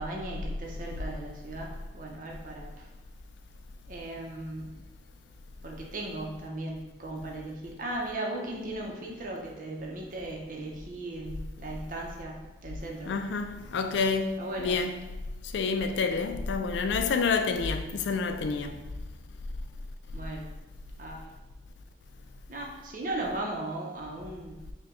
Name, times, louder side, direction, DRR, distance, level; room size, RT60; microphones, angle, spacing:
voice 1, 0.0-2.7 3.9-4.7 5.6-12.3 12.6-13.1 14.4-14.8 20.1-20.4 21.0-21.3 22.5-24.6, right 2 dB, 45° right, 0.7 m, -37 dB
voice 2, 13.1-15.0 15.5-18.8, left 4 dB, 80° left, 0.3 m, -28 dB
4.7 x 2.2 x 3.6 m
head